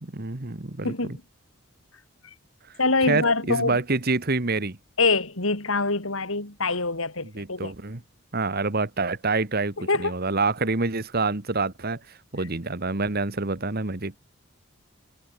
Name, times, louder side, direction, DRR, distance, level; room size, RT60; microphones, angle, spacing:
voice 1, 0.0-1.2 3.0-4.8 7.3-8.0 8.3-14.2, right 3 dB, 45° right, 1.5 m, -27 dB
voice 2, 0.8-1.2 2.8-3.8 5.0-7.7 9.9-10.2, left 3 dB, 70° left, 4.0 m, -24 dB
head